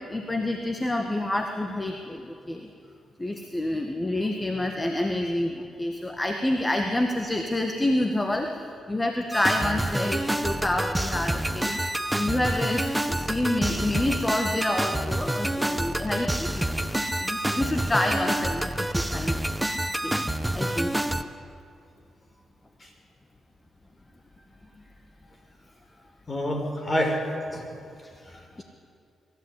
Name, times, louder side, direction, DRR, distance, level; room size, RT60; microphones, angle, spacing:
voice 1, 0.0-2.7 3.2-11.8 12.1-19.4 20.0-21.0 28.0-28.6, left 1 dB, 20° left, 4 dB, 1.9 m, -28 dB
sound 1, 9.3-21.2, right 1 dB, 10° right, 1.2 m, -28 dB
voice 2, 26.3-27.2 27.5-27.9 28.3-28.6, equal, 35° left, 2 dB, 5.8 m, -29 dB
23.0 x 14.0 x 10.0 m, 2.5 s
supercardioid pair, 60°, 0 cm